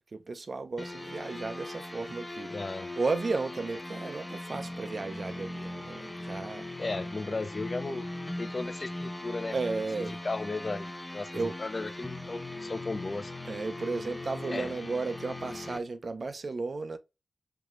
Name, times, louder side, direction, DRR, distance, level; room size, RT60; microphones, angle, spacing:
voice 1, 0.1-2.5 3.0-6.7 9.5-10.2 11.3-11.6 13.5-17.0, right 3 dB, 60° right, 0.5 m, -34 dB
sound 1, 0.8-15.8, left 1 dB, 15° left, 0.8 m, -40 dB
voice 2, 2.5-2.9 6.8-8.1 8.4-9.6 10.0-13.3 14.5-14.7, left 3 dB, 50° left, 0.6 m, -35 dB
4.7 x 2.9 x 2.5 m
cardioid pair, 40°, 0 cm